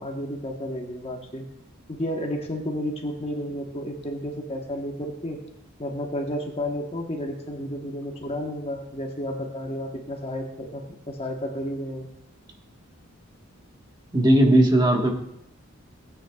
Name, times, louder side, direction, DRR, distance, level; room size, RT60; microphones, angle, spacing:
voice 1, 0.0-1.5 1.9-5.4 5.8-12.1, equal, 30° left, 1 dB, 1.2 m, -32 dB
voice 2, 14.1-15.1, right 1 dB, 20° right, 1 dB, 1.4 m, -17 dB
17.5 x 9.3 x 2.4 m, 0.74 s
head